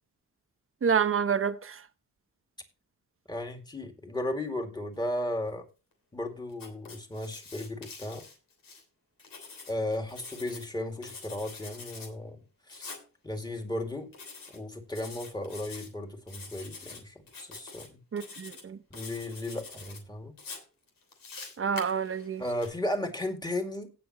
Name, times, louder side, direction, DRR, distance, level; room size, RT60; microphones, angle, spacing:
voice 1, 0.8-1.8 18.1-18.8 21.6-22.4, right 7 dB, 40° right, 0.9 m, -28 dB
voice 2, 3.3-5.7 6.1-8.2 9.7-12.4 12.7-12.9 13.2-14.1 14.5-18.0 18.9-20.4 22.4-23.9, left 1 dB, 15° left, 2.3 m, -35 dB
Writing, 6.5-8.8 9.2-10.7 11.0-12.1 12.7-13.0 14.1-14.6 14.9-15.9 16.3-17.0 17.3-17.9 18.2-18.6 18.9-20.0 20.4-22.7, left 4 dB, 85° left, 3.1 m, -45 dB
17.5 x 6.0 x 3.0 m
wide cardioid pair, 105°, 32 cm